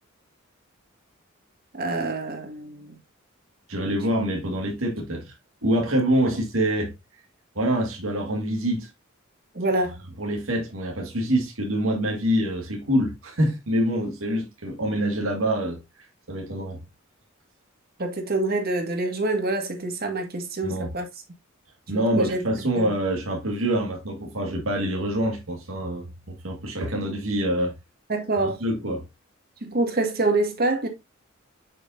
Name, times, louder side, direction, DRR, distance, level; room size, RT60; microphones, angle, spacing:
voice 1, 1.7-2.9 9.6-10.0 18.0-21.1 22.2-22.4 22.8-22.9 28.1-28.6 29.6-30.9, right 2 dB, 50° right, 1.9 m, -26 dB
voice 2, 3.7-5.3 5.6-6.9 7.6-8.9 10.2-16.8 20.6-20.9 21.9-27.7 28.4-29.0, right 1 dB, 85° right, 1.9 m, -26 dB
7.3 x 6.6 x 2.6 m
head